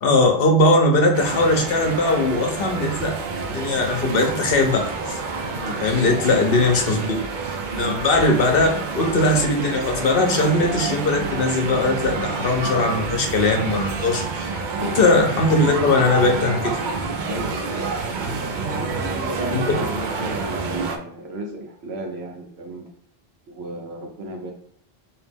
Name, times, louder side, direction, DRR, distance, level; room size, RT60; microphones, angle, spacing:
voice 1, 0.0-3.1 3.4-5.2 5.8-7.2 7.8-8.7 8.9-14.6 15.0-16.8 19.5-19.6, left 2 dB, 65° left, 2 dB, 0.9 m, -20 dB
sound 1, 1.1-21.0, right 4 dB, 55° right, 0.6 m, -28 dB
voice 2, 7.7-8.0 14.7-15.0 17.2-22.9 23.5-24.5, right 1 dB, 80° right, 1 dB, 1.1 m, -34 dB
3.0 x 2.9 x 3.4 m, 0.69 s
omnidirectional pair, 1.1 m